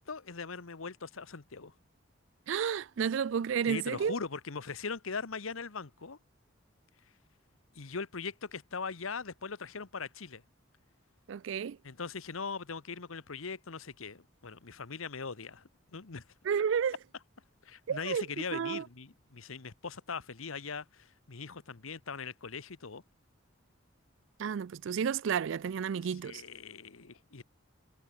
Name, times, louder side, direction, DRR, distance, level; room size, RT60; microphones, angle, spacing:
voice 1, 0.0-1.7 3.7-6.2 7.7-10.4 11.8-16.2 17.6-23.0 26.2-27.4, left 5 dB, 85° left, 1.1 m, -40 dB
voice 2, 2.5-4.2 11.3-11.8 16.4-17.0 17.9-18.2 18.5-18.8 24.4-26.4, right 7 dB, 65° right, 0.3 m, -31 dB
head